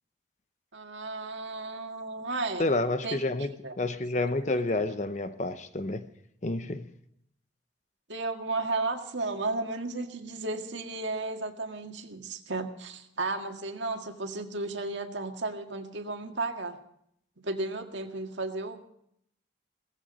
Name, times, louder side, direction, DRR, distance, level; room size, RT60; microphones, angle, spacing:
voice 1, 0.7-2.7 3.0-3.2 3.6-3.7 8.1-16.8 17.4-18.8, right 2 dB, 80° right, 1.9 m, -34 dB
voice 2, 2.6-6.1 6.4-6.9, left 2 dB, 40° left, 0.8 m, -29 dB
18.0 x 15.0 x 5.3 m
head